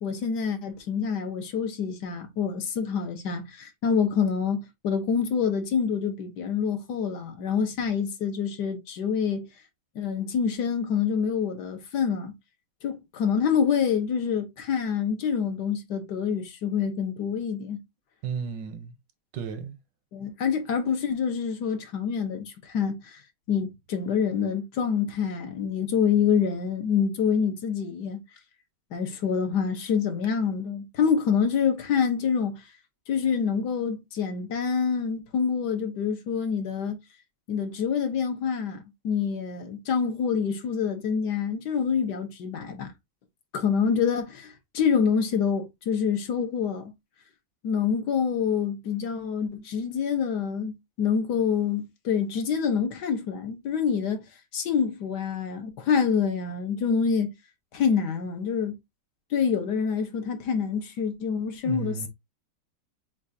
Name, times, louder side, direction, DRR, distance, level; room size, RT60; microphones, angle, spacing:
voice 1, 0.0-9.4 9.9-12.3 12.8-17.8 20.1-23.2 23.5-28.2 28.9-32.5 33.1-37.0 37.5-42.9 43.5-46.9 47.6-54.2 54.5-57.3 57.7-58.7 59.3-62.1, left 6 dB, 70° left, 1.5 m, -26 dB
voice 2, 18.2-18.9 19.3-19.8 61.6-62.1, right 7 dB, 85° right, 1.5 m, -33 dB
7.0 x 2.4 x 2.7 m
omnidirectional pair, 1.9 m